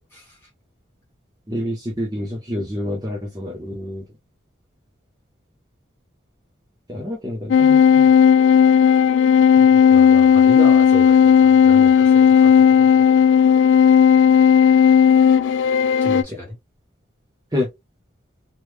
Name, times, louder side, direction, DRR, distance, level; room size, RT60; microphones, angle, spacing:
voice 1, 1.5-4.0 6.9-8.1 17.5-17.7, left 1 dB, 20° right, 0.6 m, -27 dB
sound 1, 7.5-16.2, left 7 dB, 75° left, 0.4 m, -13 dB
voice 2, 9.9-13.2 16.0-16.6, equal, 10° left, 1.6 m, -33 dB
3.1 x 2.3 x 3.2 m
head